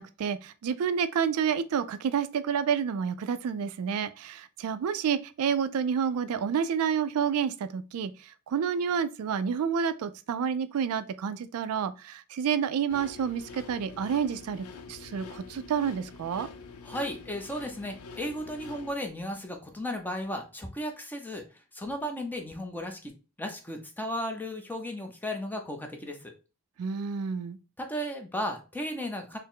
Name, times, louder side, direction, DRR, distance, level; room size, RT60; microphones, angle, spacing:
voice 1, 0.0-16.5 26.8-27.6, right 7 dB, 80° right, 0.3 m, -29 dB
sound 1, 12.9-18.9, left 4 dB, 90° left, 0.5 m, -46 dB
voice 2, 16.8-23.1 23.4-26.3 27.8-29.4, equal, 10° left, 0.6 m, -35 dB
4.2 x 2.0 x 3.7 m
head